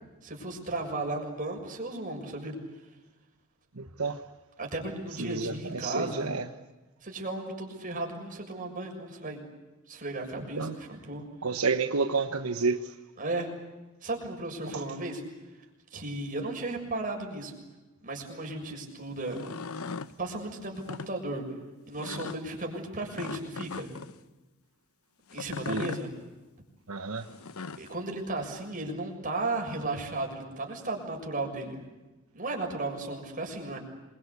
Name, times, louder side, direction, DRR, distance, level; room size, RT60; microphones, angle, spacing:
voice 1, 0.2-2.9 4.6-6.3 7.0-9.4 9.9-11.2 13.2-13.5 14.0-15.2 15.9-17.6 18.0-19.4 20.2-21.4 21.9-23.9 25.3-26.1 27.8-31.8 32.3-33.8, right 2 dB, 40° right, 2 dB, 6.8 m, -35 dB
voice 2, 3.8-4.2 5.2-6.4 10.6-10.7 11.4-12.9 14.7-14.8 25.7-25.8 26.9-27.3, right 4 dB, 85° right, 8 dB, 1.2 m, -30 dB
sound 1, 19.2-20.1 20.8-21.1 22.0-22.4 23.2-24.1 25.3-26.0 27.2-27.9, left 4 dB, 85° left, 0.9 m, -38 dB
27.5 x 23.5 x 8.4 m, 1.1 s
head